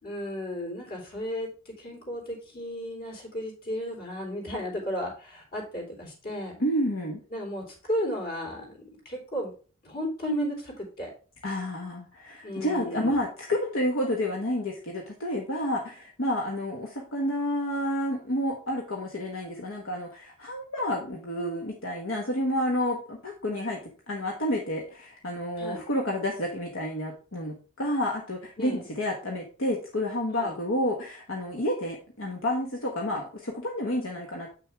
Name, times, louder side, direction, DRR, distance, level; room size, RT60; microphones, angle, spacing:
voice 1, 0.0-6.6 7.3-9.5 9.8-11.1 12.4-13.2 25.6-25.8 28.6-28.8 30.3-30.5, equal, 45° left, 0 dB, 3.4 m, -34 dB
voice 2, 6.6-7.2 11.4-34.5, left 1 dB, 70° left, 1 dB, 1.2 m, -30 dB
7.9 x 6.3 x 3.4 m, 0.38 s
head